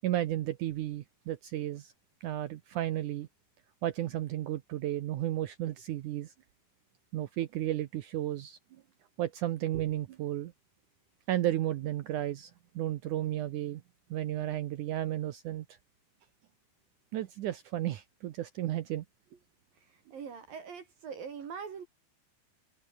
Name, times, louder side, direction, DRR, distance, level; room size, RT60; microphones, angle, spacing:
voice 1, 0.0-1.9 2.2-3.3 3.8-6.3 7.1-8.6 9.2-10.5 11.3-13.8 14.1-15.6 17.1-19.0, right 13 dB, 90° right, 1.7 m, -33 dB
voice 2, 19.8-21.9, right 6 dB, 55° right, 4.2 m, -43 dB
omnidirectional pair, 5.0 m